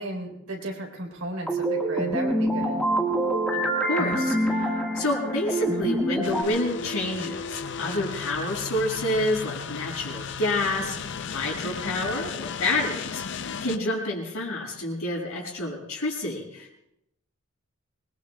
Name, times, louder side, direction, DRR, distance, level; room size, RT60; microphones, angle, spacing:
voice 1, 0.0-2.8, right 1 dB, 75° right, 1 dB, 3.6 m, -34 dB
sound 1, 1.5-6.4, right 1 dB, 5° left, 1.5 m, -26 dB
voice 2, 3.5-11.0 11.3-16.8, left 1 dB, 80° left, -1 dB, 6.3 m, -29 dB
sound 2, 6.2-13.8, left 6 dB, 55° left, 0.5 m, -35 dB
26.0 x 21.5 x 2.2 m, 0.85 s
head